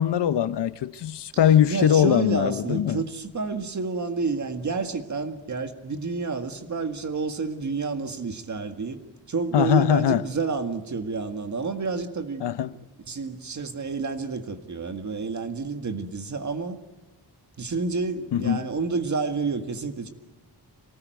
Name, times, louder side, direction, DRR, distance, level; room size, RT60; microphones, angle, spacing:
voice 1, 0.0-3.0 9.5-10.2 12.4-12.7 18.3-18.6, left 10 dB, 85° left, 0.9 m, -21 dB
voice 2, 1.6-9.0 9.3-12.4 13.1-16.8 17.6-20.1, right 4 dB, 45° right, 1.9 m, -29 dB
26.0 x 19.0 x 9.3 m
wide cardioid pair, 165°, 40 cm